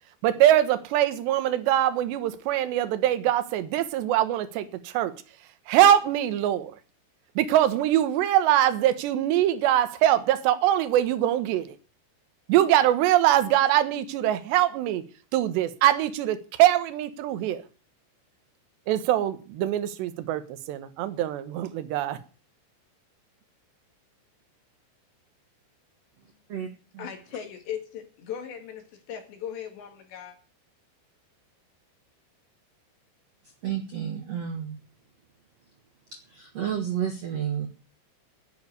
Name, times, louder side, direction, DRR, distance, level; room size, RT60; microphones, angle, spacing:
voice 1, 0.2-5.1 5.7-6.7 7.4-11.8 12.5-15.0 15.3-17.6 18.9-20.4 20.7-22.2, right 12 dB, 70° right, 3.2 m, -23 dB
voice 2, 27.0-30.4, left 9 dB, 65° left, 4.2 m, -38 dB
voice 3, 33.4-34.8 36.2-37.7, right 9 dB, 85° right, 1.4 m, -31 dB
10.5 x 10.5 x 8.2 m
omnidirectional pair, 5.4 m